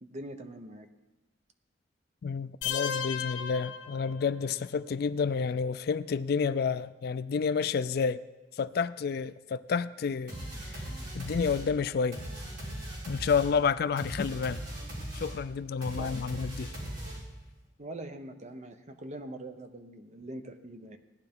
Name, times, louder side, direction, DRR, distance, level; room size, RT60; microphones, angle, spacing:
voice 1, 0.0-0.9 16.0-16.1 17.8-21.0, right 1 dB, 40° right, 0.8 m, -43 dB
voice 2, 2.2-8.2 8.5-10.8 11.1-12.2 13.1-14.6 15.1-16.7, left 5 dB, 55° left, 0.3 m, -30 dB
sound 1, 2.6-4.6, left 8 dB, 75° left, 0.9 m, -35 dB
sound 2, 10.3-17.5, right 1 dB, 70° right, 4.7 m, -39 dB
17.0 x 10.5 x 3.6 m
head